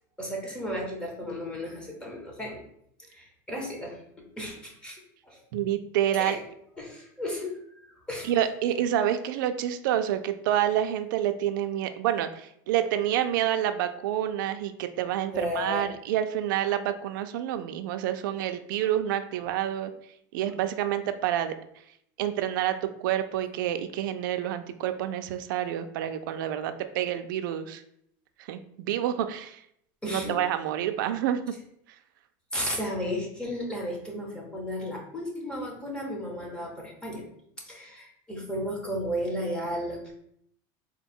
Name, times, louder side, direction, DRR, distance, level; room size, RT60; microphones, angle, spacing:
voice 1, 0.2-2.6 3.1-4.0 4.4-5.4 6.1-6.4 6.8-8.3 15.3-15.9 18.8-18.9 30.0-30.4 32.5-37.2 37.7-40.1, equal, 10° left, -2 dB, 0.9 m, -34 dB
voice 2, 5.5-6.4 8.2-19.9 20.3-21.5 22.2-27.8 28.4-29.6 30.1-31.4, right 11 dB, 85° right, 8 dB, 0.4 m, -28 dB
3.8 x 2.2 x 4.3 m, 0.72 s
supercardioid pair, 160°, 10 cm